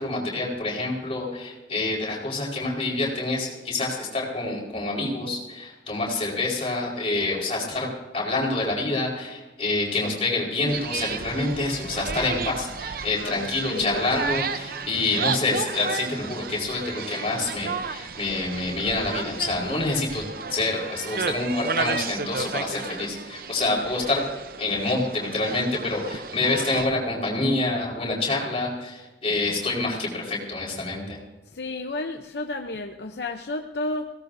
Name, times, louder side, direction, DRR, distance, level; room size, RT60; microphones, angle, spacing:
voice 1, 0.0-7.9 8.1-20.2 20.5-24.2 24.6-31.2, left 2 dB, 35° left, -3 dB, 4.6 m, -27 dB
sound 1, 10.7-26.9, right 5 dB, 55° right, 0.7 m, -33 dB
voice 2, 13.2-14.1 31.5-34.1, left 2 dB, 65° left, 4 dB, 0.8 m, -32 dB
21.5 x 17.5 x 2.7 m, 1.2 s
head